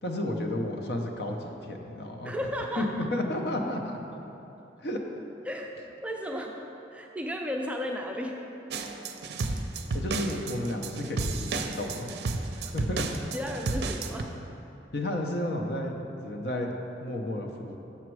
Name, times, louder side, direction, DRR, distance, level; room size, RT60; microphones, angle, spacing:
voice 1, 0.0-2.3 2.8-4.0 4.8-5.2 9.9-13.1 14.9-15.9 16.2-17.8, left 1 dB, 65° left, 2 dB, 0.7 m, -32 dB
voice 2, 2.2-3.1 5.5-5.7 6.0-8.4 13.3-14.3, equal, 5° right, 1 dB, 0.4 m, -34 dB
sound 1, 8.7-14.2, right 3 dB, 65° right, 0.5 m, -32 dB
7.3 x 6.1 x 4.6 m, 3.0 s
head